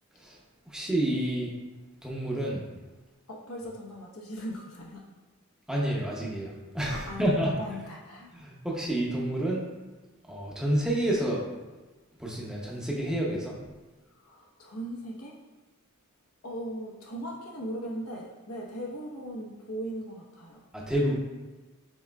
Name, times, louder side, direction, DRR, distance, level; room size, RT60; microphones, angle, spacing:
voice 1, 0.7-1.5 2.0-2.6 5.7-7.5 8.3-9.6 10.3-11.4 12.2-13.6 20.7-21.2, right 1 dB, 5° right, -4 dB, 0.6 m, -29 dB
voice 2, 3.3-5.0 6.9-8.3 14.1-15.3 16.4-20.6, equal, 85° left, -2 dB, 0.9 m, -39 dB
6.0 x 3.7 x 2.3 m, 1.2 s
head